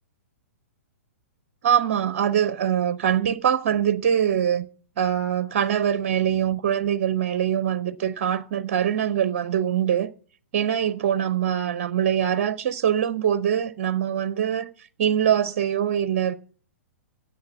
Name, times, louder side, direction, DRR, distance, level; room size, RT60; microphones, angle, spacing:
voice 1, 1.6-4.7 5.0-10.1 10.5-14.7 15.0-16.3, right 9 dB, 50° right, 0.6 m, -23 dB
9.6 x 7.7 x 7.1 m
figure-of-eight pair, 110°, 8 cm